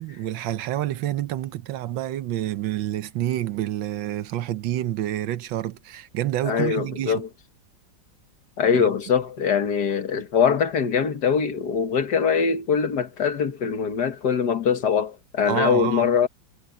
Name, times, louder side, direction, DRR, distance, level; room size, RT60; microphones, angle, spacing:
voice 1, 0.0-7.2 8.7-8.9 15.5-16.1, right 13 dB, 90° right, 1.6 m, -28 dB
voice 2, 6.4-7.3 8.6-16.3, left 6 dB, 60° left, 2.0 m, -22 dB
omnidirectional pair, 2.0 m